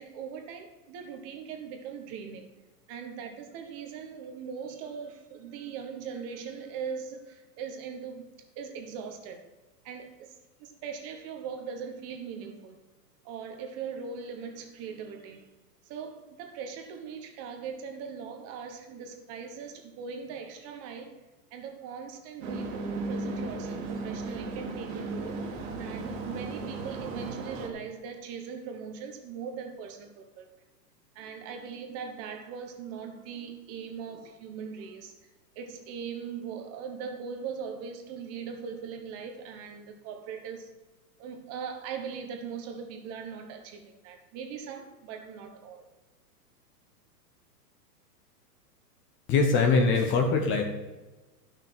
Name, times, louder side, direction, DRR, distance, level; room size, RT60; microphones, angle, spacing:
voice 1, 0.0-2.5 2.9-9.4 9.8-10.3 10.6-12.8 13.2-15.4 15.8-21.1 21.5-25.5 25.8-30.6 31.1-35.1 35.5-40.7 41.2-45.9, right 6 dB, 30° right, 4 dB, 1.1 m, -40 dB
sound 1, 22.4-27.7, right 3 dB, 50° right, 2.1 m, -35 dB
voice 2, 49.3-50.6, left 4 dB, 25° left, 4 dB, 1.0 m, -22 dB
13.0 x 6.0 x 4.5 m, 1.1 s
hypercardioid pair, 140°, 48 cm